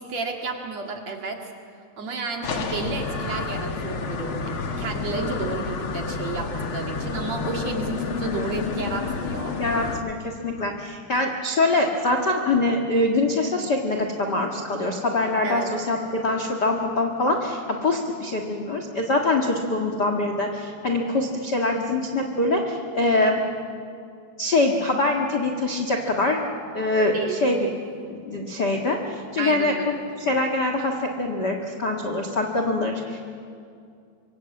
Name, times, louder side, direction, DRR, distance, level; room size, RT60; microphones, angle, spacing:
voice 1, 0.0-1.5 2.0-9.6 15.4-15.7 27.1-27.4 29.4-30.0, right 3 dB, 45° right, 2 dB, 2.8 m, -31 dB
sound 1, 2.4-10.0, left 4 dB, 90° left, 1.1 m, -30 dB
voice 2, 9.6-23.4 24.4-26.4 26.7-27.7 28.1-33.2, left 2 dB, 60° left, 3 dB, 1.0 m, -24 dB
26.0 x 24.5 x 8.7 m, 2.4 s
omnidirectional pair, 4.9 m